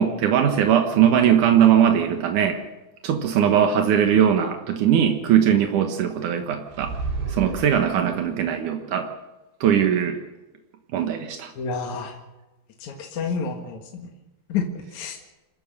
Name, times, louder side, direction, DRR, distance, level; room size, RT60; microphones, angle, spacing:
voice 1, 0.0-2.6 3.0-6.9 7.3-9.1 9.6-10.2 10.9-11.5, right 9 dB, 80° right, 5 dB, 1.8 m, -20 dB
sound 1, 6.7-8.3, right 4 dB, 60° right, 6.4 m, -31 dB
voice 2, 11.6-12.2 12.8-14.1 14.5-15.2, left 5 dB, 60° left, 2 dB, 2.0 m, -29 dB
27.5 x 14.5 x 6.6 m, 1.1 s
omnidirectional pair, 5.9 m